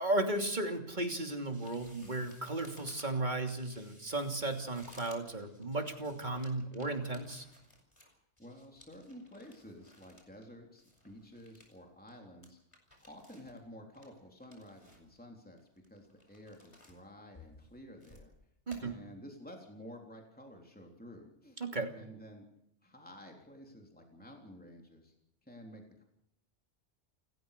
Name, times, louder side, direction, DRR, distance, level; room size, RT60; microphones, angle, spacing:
voice 1, 0.0-7.4 18.7-19.0 21.6-21.9, right 2 dB, 40° right, 4 dB, 3.1 m, -35 dB
sound 1, 1.5-10.5 10.8-11.8 12.1-12.2 12.4-13.6 13.9-15.2 15.6-17.0 17.3-18.3 18.7-18.8, left 1 dB, 25° left, 5.7 m, -59 dB
voice 2, 8.4-12.6 13.0-18.3 18.8-21.6 22.0-22.4 22.8-25.1 25.4-26.0, equal, 5° left, 1 dB, 3.5 m, -52 dB
29.0 x 14.5 x 6.8 m, 0.77 s
omnidirectional pair, 1.2 m